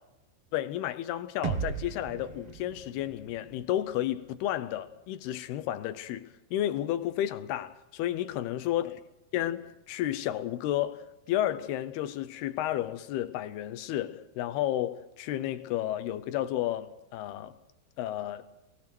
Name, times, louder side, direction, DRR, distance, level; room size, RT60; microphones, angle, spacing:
voice 1, 0.5-9.0 9.3-17.6 18.0-18.5, left 12 dB, 80° left, 2.8 m, -32 dB
sound 1, 1.4-5.4, right 7 dB, 55° right, 1.7 m, -39 dB
26.5 x 20.5 x 6.1 m
omnidirectional pair, 4.7 m